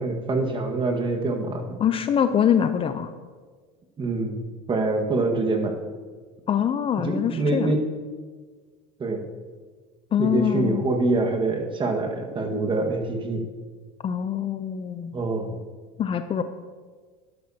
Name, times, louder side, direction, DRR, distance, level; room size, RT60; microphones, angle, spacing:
voice 1, 0.0-1.8 4.0-4.4 4.7-5.8 7.0-7.8 9.0-9.2 10.2-13.5 15.1-15.6, right 2 dB, 30° right, 3 dB, 1.7 m, -25 dB
voice 2, 1.8-3.1 6.5-7.7 10.1-10.8 14.0-15.1 16.0-16.4, left 8 dB, 30° left, 10 dB, 0.6 m, -24 dB
12.0 x 11.0 x 2.9 m, 1.5 s
supercardioid pair, 100°, 18 cm